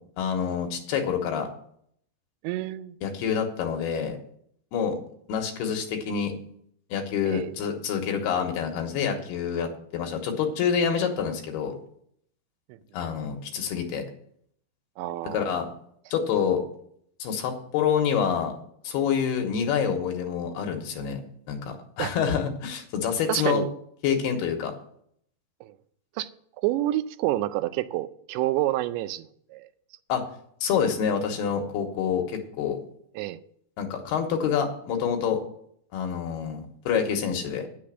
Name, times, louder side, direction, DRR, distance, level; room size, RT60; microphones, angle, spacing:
voice 1, 0.2-1.5 3.0-4.2 4.7-5.0 5.3-6.3 6.9-11.7 12.9-14.0 15.3-15.7 16.1-16.6 17.2-18.5 18.8-21.2 21.5-23.6 24.0-24.8 30.1-30.2 30.6-32.8 33.8-35.4 35.9-37.7, left 7 dB, 70° left, 3.0 m, -27 dB
voice 2, 2.4-3.0 7.3-7.5 15.0-15.5 22.0-22.1 23.3-23.7 25.6-25.7 26.2-26.3 26.6-29.7 33.2-33.4, right 15 dB, 85° right, 2.8 m, -28 dB
9.6 x 6.8 x 7.4 m
omnidirectional pair, 5.1 m